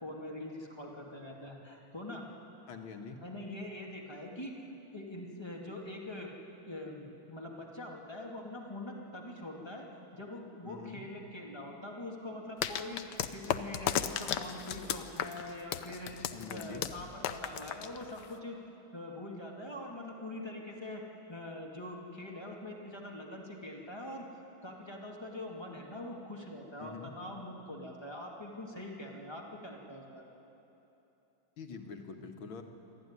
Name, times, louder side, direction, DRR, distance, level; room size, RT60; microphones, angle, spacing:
voice 1, 0.0-2.3 3.2-4.6 4.9-6.3 6.7-9.9 10.1-18.6 18.9-21.0 21.3-24.3 24.6-30.3, left 1 dB, 15° left, -2 dB, 2.3 m, -43 dB
voice 2, 2.7-3.2 10.6-11.0 16.3-16.8 26.8-27.1 31.6-32.6, left 5 dB, 85° left, 4 dB, 2.3 m, -45 dB
sound 1, 12.6-18.4, left 10 dB, 65° left, 1.3 m, -35 dB
24.0 x 14.0 x 9.8 m, 3.0 s
omnidirectional pair, 2.2 m